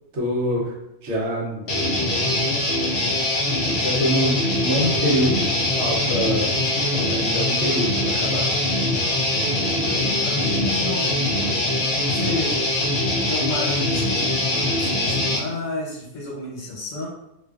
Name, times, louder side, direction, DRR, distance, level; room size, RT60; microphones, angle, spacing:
voice 1, 0.1-0.7 1.0-3.4 3.8-5.5 5.8-6.5 6.9-8.5, equal, 60° right, -3 dB, 1.0 m, -26 dB
Guitar, 1.7-15.4, left 1 dB, 60° left, 0.7 m, -22 dB
voice 2, 9.6-11.3 12.1-12.6 13.3-17.1, left 2 dB, 80° left, -4 dB, 1.2 m, -31 dB
2.5 x 2.4 x 2.3 m, 0.87 s
omnidirectional pair, 1.3 m